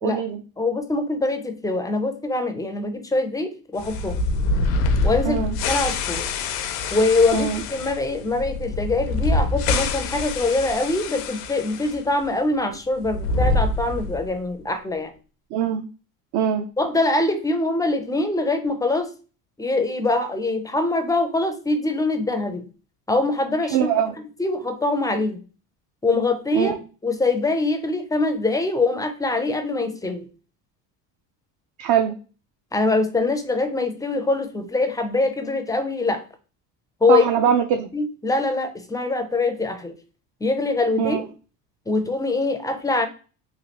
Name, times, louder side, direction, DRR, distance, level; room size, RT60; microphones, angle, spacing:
voice 1, 0.0-0.4 5.2-5.5 7.3-7.6 15.5-15.8 16.3-16.6 23.7-24.1 26.5-26.7 31.8-32.1 37.1-37.9 41.0-41.3, right 9 dB, 60° right, 5 dB, 0.5 m, -22 dB
voice 2, 0.6-4.2 5.0-6.3 6.9-15.1 16.8-19.1 19.6-22.6 23.1-23.9 24.4-25.4 26.0-26.8 27.0-30.3 32.7-36.2 37.0-37.2 37.9-40.0 40.4-41.2 41.9-43.1, left 2 dB, 10° left, 7 dB, 0.4 m, -23 dB
sound 1, 3.8-12.0 12.2-12.3 13.0-14.3, left 3 dB, 85° left, 0.6 m, -25 dB
3.2 x 2.3 x 2.8 m, 0.35 s
supercardioid pair, 90°, 45 cm